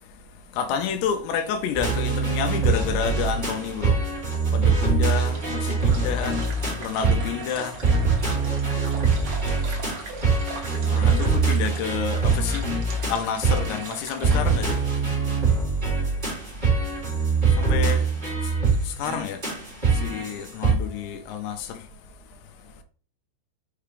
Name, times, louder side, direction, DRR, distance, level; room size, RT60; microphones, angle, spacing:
voice 1, 0.5-4.1 4.5-7.9 10.5-12.7 13.1-15.1 17.4-18.1 18.4-18.5 18.8-19.5 19.9-21.9, left 7 dB, 80° left, 2.7 m, -30 dB
sound 1, 1.7-20.7, right 4 dB, 15° right, 1.7 m, -23 dB
sound 2, 5.2-14.5, right 4 dB, 90° right, 1.2 m, -41 dB
6.6 x 4.8 x 3.4 m
omnidirectional pair, 5.1 m